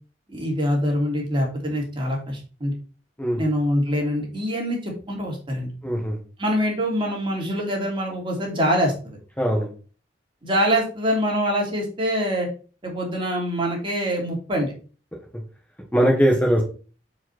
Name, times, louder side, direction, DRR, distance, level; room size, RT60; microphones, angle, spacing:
voice 1, 0.3-2.7 3.4-5.7 6.4-9.2 10.4-12.5 12.8-14.7, equal, 30° right, -1 dB, 2.8 m, -24 dB
voice 2, 5.8-6.2 9.4-9.7 15.9-16.6, equal, 10° left, -1 dB, 1.4 m, -20 dB
7.2 x 5.1 x 4.2 m, 0.37 s
head